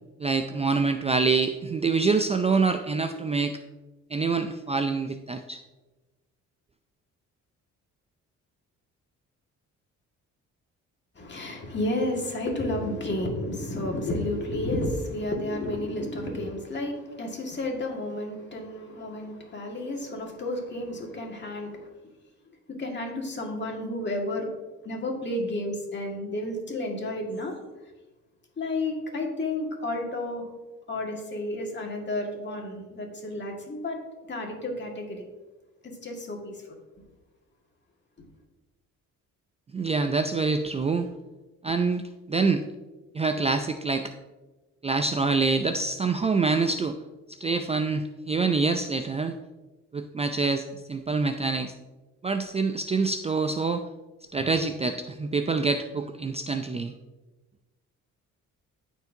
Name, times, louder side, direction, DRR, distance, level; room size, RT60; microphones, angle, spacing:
voice 1, 0.2-3.6 4.1-5.6 39.7-41.1 41.6-42.0 42.3-42.6 43.1-44.1 44.8-47.0 47.4-49.4 49.9-51.7 52.2-53.8 54.3-56.9, right 4 dB, 20° right, 7 dB, 0.4 m, -26 dB
voice 2, 11.2-21.9 22.7-24.5 24.8-27.5 28.6-30.4 30.9-34.0 34.3-35.2 35.8-36.6 37.0-37.1 38.2-38.3, left 1 dB, 35° left, 1 dB, 1.9 m, -31 dB
13.0 x 4.5 x 2.7 m, 1.2 s
cardioid pair, 90°, 30 cm